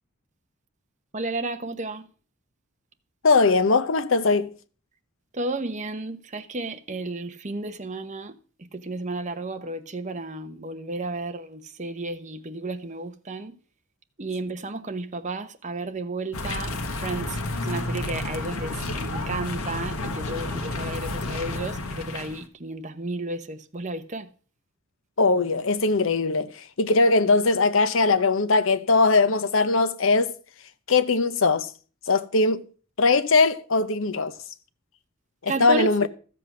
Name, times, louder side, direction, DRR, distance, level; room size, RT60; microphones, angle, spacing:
voice 1, 1.1-2.1 5.3-8.3 8.7-13.5 14.2-24.3 35.5-36.1, right 2 dB, 35° right, 1.0 m, -32 dB
voice 2, 3.2-4.5 25.2-30.3 30.9-31.7 32.1-32.6 33.0-34.3 35.4-36.1, left 3 dB, 65° left, 0.8 m, -20 dB
sound 1, 16.3-22.4, left 2 dB, 85° left, 1.5 m, -31 dB
13.5 x 7.6 x 6.1 m
head